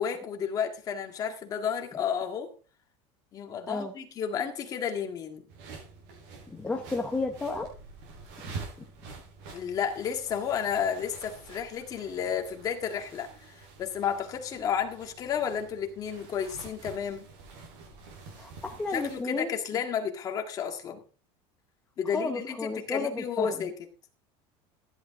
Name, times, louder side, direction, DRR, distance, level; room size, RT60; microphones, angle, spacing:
voice 1, 0.0-2.5 3.3-5.5 9.5-17.3 18.9-21.0 22.0-23.7, left 7 dB, 25° left, 4 dB, 1.8 m, -32 dB
sound 1, 5.5-19.2, right 4 dB, 60° right, 7.1 m, -47 dB
voice 2, 6.5-7.7 8.5-8.6 18.4-19.5 22.1-23.5, left 3 dB, 10° left, 2 dB, 0.9 m, -32 dB
15.0 x 11.0 x 3.7 m, 0.37 s
cardioid pair, 180°, 14 cm